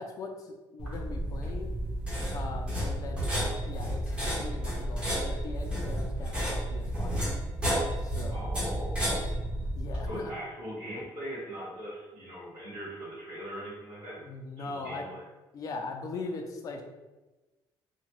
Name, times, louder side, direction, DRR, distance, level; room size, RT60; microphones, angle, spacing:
voice 1, 0.0-1.7 2.3-7.2 8.0-8.4 9.8-10.3 14.2-15.0 15.5-16.8, left 3 dB, 40° left, 4 dB, 0.4 m, -40 dB
sound 1, 0.8-10.1, equal, 10° right, 0.8 m, -31 dB
voice 2, 8.3-9.5 10.0-14.2 14.6-15.2, equal, 40° right, -12 dB, 1.3 m, -40 dB
2.8 x 2.2 x 3.0 m, 1.1 s
cardioid pair, 175°, 9 cm